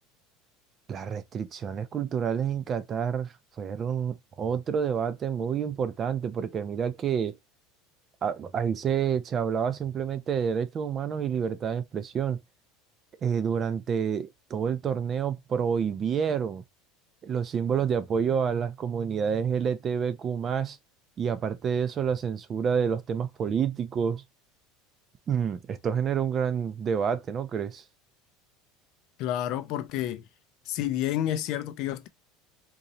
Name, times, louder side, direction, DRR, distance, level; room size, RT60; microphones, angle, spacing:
voice 1, 0.9-7.4 8.2-12.4 13.2-16.6 17.2-20.8 21.2-24.2 25.3-27.8, right 7 dB, 20° right, 0.4 m, -28 dB
voice 2, 29.2-30.2 30.7-32.1, left 12 dB, 40° left, 0.4 m, -29 dB
3.8 x 3.0 x 2.7 m
cardioid pair, 180°, 0 cm